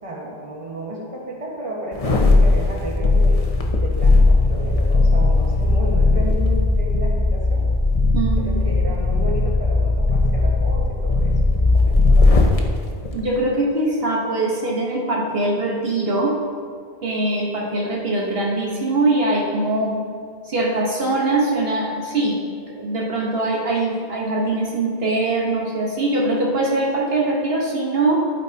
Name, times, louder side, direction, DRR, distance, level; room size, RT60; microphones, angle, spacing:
voice 1, 0.0-3.4 3.8-7.6 8.4-12.7, right 1 dB, 35° right, -3 dB, 1.6 m, -32 dB
sound 1, 1.9-12.6 13.0-13.1, left 2 dB, 40° left, 0.8 m, -17 dB
voice 2, 8.1-8.7 13.1-16.4 17.0-20.0 20.4-22.4 22.7-28.2, right 2 dB, 75° right, -3 dB, 1.5 m, -22 dB
11.5 x 9.1 x 2.8 m, 2.2 s
omnidirectional pair, 1.0 m